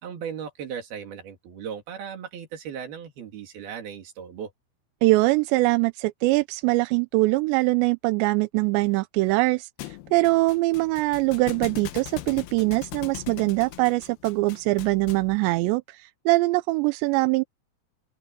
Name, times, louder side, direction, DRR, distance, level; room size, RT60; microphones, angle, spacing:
voice 1, 0.0-4.5, right 8 dB, 60° right, 4.4 m, -37 dB
voice 2, 5.0-17.4, right 22 dB, 85° right, 2.7 m, -23 dB
Thump thud, 9.8-15.4, left 13 dB, 70° left, 2.5 m, -40 dB
open air
omnidirectional pair, 5.4 m